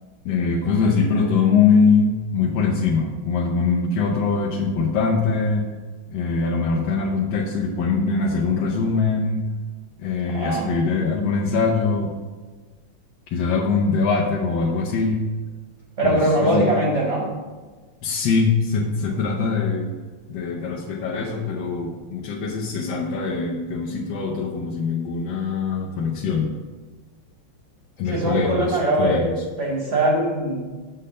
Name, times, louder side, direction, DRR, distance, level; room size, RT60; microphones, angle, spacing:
voice 1, 0.2-5.7 6.1-9.4 10.0-12.1 13.3-15.2 16.0-16.7 18.0-19.9 20.3-26.5 28.0-29.3, left 4 dB, 65° left, -3 dB, 1.4 m, -22 dB
voice 2, 10.2-10.8 16.0-17.3 28.1-29.3 29.6-30.6, right 1 dB, 40° right, -2 dB, 0.9 m, -21 dB
6.5 x 4.0 x 6.5 m, 1.3 s
omnidirectional pair, 2.4 m